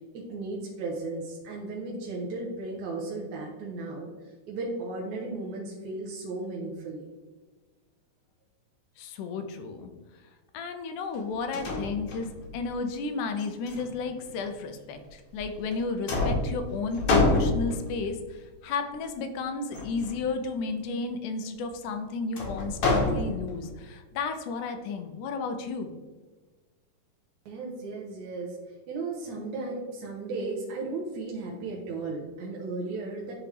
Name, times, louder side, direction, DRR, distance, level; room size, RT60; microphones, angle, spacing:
voice 1, 0.1-7.1 27.5-28.6 28.9-33.3, right 3 dB, 70° right, -3 dB, 2.0 m, -35 dB
voice 2, 9.0-9.9 10.5-25.9, left 4 dB, 80° left, 7 dB, 2.0 m, -33 dB
sound 1, 11.1-11.2 11.5-12.6 13.4-14.4 15.3-15.8 16.1-18.0 19.7-20.2 22.4-23.7, left 2 dB, 60° left, 1.8 m, -27 dB
10.0 x 3.4 x 3.2 m, 1.3 s
omnidirectional pair, 3.9 m